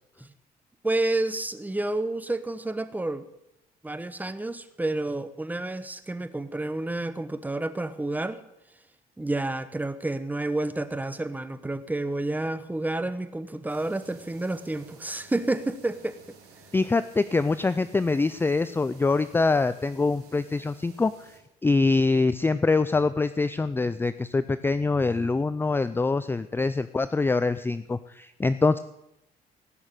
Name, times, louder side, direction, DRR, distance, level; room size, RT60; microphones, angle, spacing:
voice 1, 0.8-3.2 3.8-8.4 9.2-16.2, right 2 dB, 10° right, 12 dB, 1.1 m, -30 dB
sound 1, 13.7-21.4, right 4 dB, 70° right, 4.5 m, -53 dB
voice 2, 16.7-21.3 21.6-28.8, left 3 dB, 15° left, 14 dB, 0.5 m, -24 dB
18.0 x 6.4 x 9.0 m, 0.83 s
cardioid pair, 110°, 17 cm